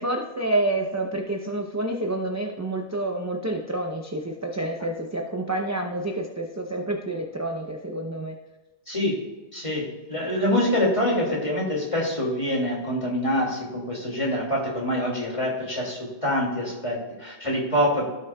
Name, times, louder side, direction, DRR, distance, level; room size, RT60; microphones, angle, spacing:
voice 1, 0.0-8.4 11.2-11.3, right 1 dB, 20° right, 1 dB, 0.6 m, -28 dB
voice 2, 8.9-9.2 9.5-18.1, left 1 dB, 30° left, -3 dB, 2.4 m, -25 dB
16.0 x 6.3 x 2.3 m, 1.2 s
omnidirectional pair, 1.1 m